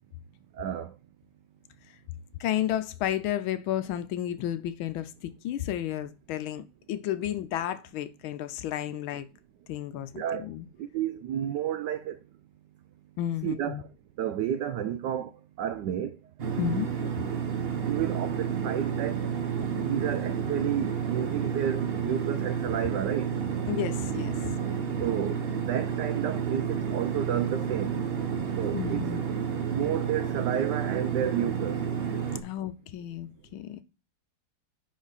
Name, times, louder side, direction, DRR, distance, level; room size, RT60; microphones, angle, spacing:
voice 1, 0.6-0.9 9.9-10.5 10.8-12.2 13.4-13.9 14.2-15.3 15.6-16.2 17.8-19.2 19.6-23.3 25.0-25.4 25.7-28.0 28.6-29.1 29.7-31.8, right 10 dB, 85° right, 0.9 m, -31 dB
voice 2, 2.4-9.3 9.7-10.7 13.2-13.8 16.6-16.9 23.7-24.4 28.7-29.2 32.4-33.8, left 11 dB, 75° left, 1.4 m, -32 dB
sound 1, 16.4-32.4, right 7 dB, 50° right, 0.7 m, -30 dB
10.0 x 4.5 x 4.0 m
omnidirectional pair, 2.4 m